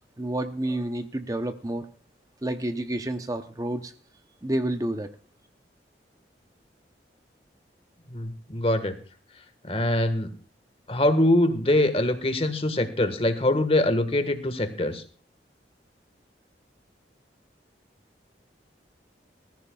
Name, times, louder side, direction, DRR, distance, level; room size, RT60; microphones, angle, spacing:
voice 1, 0.2-1.9 2.4-3.9 4.4-5.1, right 1 dB, 20° right, 8 dB, 0.7 m, -29 dB
voice 2, 8.1-8.9 9.6-10.3 10.9-15.0, left 1 dB, 35° left, 10 dB, 1.5 m, -23 dB
20.5 x 14.0 x 2.3 m, 0.39 s
head